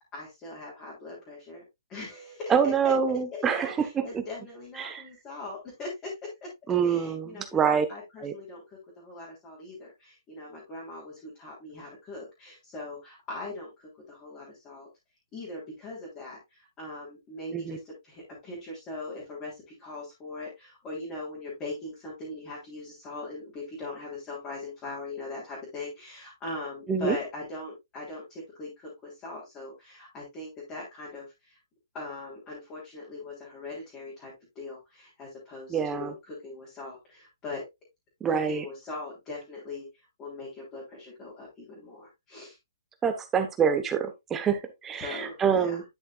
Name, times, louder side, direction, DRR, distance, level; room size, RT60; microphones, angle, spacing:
voice 1, 0.1-2.9 3.3-6.5 6.8-14.9 15.3-31.6 31.9-37.6 38.3-39.9 40.2-42.6 45.0-45.8, left 2 dB, 15° left, -6 dB, 3.4 m, -40 dB
voice 2, 2.5-4.2 4.8-5.0 6.7-7.9 8.2-8.3 17.5-17.8 26.9-27.2 35.7-36.1 38.2-38.6 43.0-45.8, right 7 dB, 10° right, 8 dB, 0.9 m, -26 dB
11.0 x 6.4 x 2.4 m, 0.20 s
hypercardioid pair, 170°, 2 cm